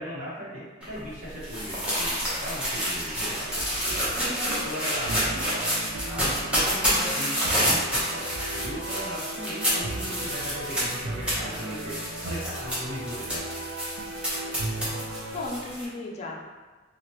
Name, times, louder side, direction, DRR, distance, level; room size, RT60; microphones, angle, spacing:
voice 1, 0.0-3.5 4.1-5.7 6.0-13.5, equal, 40° right, -10 dB, 1.2 m, -37 dB
sound 1, 0.8-15.8, equal, 5° right, 0.8 m, -29 dB
sound 2, 3.4-15.5, right 2 dB, 75° right, 0.4 m, -37 dB
voice 2, 14.1-14.9 15.3-16.4, left 2 dB, 35° left, -1 dB, 0.4 m, -37 dB
2.9 x 2.4 x 3.0 m, 1.3 s
head